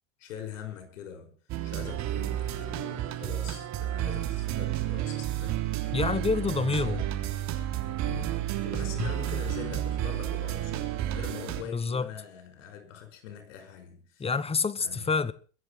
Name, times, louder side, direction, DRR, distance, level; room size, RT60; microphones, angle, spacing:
voice 1, 0.2-1.4 1.6-6.0 6.4-7.0 8.0-14.3 14.8-15.0, left 9 dB, 75° left, 5.5 m, -43 dB
sound 1, 1.5-11.6, right 13 dB, 45° right, 3.4 m, -31 dB
voice 2, 5.9-7.0 9.0-9.1 11.6-12.1 14.2-15.3, left 5 dB, 15° left, 1.1 m, -28 dB
22.0 x 8.2 x 6.5 m
hypercardioid pair, 100°, 37 cm